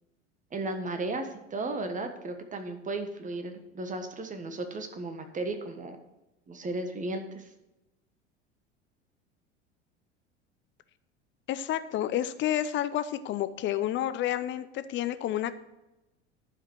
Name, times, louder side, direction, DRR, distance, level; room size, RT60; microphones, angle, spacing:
voice 1, 0.5-6.0 6.5-7.5, right 2 dB, 20° right, 7 dB, 1.4 m, -35 dB
voice 2, 11.5-15.5, left 12 dB, 35° left, 13 dB, 0.7 m, -30 dB
11.5 x 5.0 x 6.3 m, 0.98 s
figure-of-eight pair, 75°, 35 cm